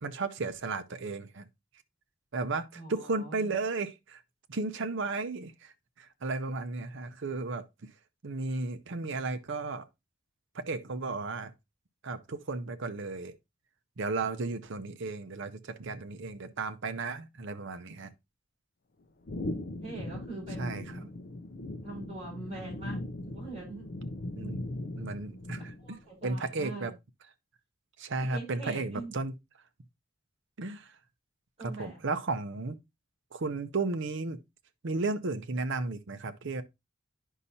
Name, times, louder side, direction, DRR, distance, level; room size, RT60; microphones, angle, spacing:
voice 1, 0.0-1.5 2.3-4.2 4.5-7.9 8.2-9.9 10.5-11.5 12.0-13.3 14.0-18.1 20.6-20.8 24.4-24.6 25.0-26.0 26.2-26.9 28.0-29.3 30.6-31.0 31.6-32.8 33.3-34.4 34.8-36.6, right 3 dB, 65° right, 0.7 m, -34 dB
voice 2, 2.7-3.5 19.8-21.1 21.8-23.9 25.8-26.9 28.2-29.1 31.6-32.0, right 2 dB, 30° right, 5.8 m, -43 dB
sound 1, 19.3-26.0, left 1 dB, 45° left, 0.6 m, -39 dB
10.0 x 5.5 x 2.7 m
head